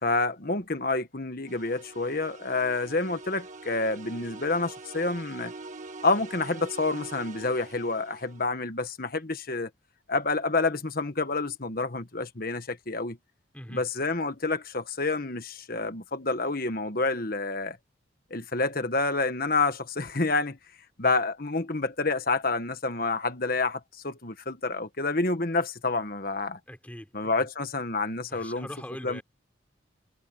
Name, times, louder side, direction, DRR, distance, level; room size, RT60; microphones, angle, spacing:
voice 1, 0.0-5.5 6.0-9.7 10.1-13.2 13.7-17.8 18.3-20.6 21.0-26.6 27.1-28.7 29.0-29.2, left 3 dB, 45° left, 1.4 m, -28 dB
sound 1, 1.5-8.5, right 3 dB, 35° right, 1.6 m, -44 dB
voice 2, 26.7-27.5 28.3-29.2, equal, 5° left, 4.0 m, -42 dB
head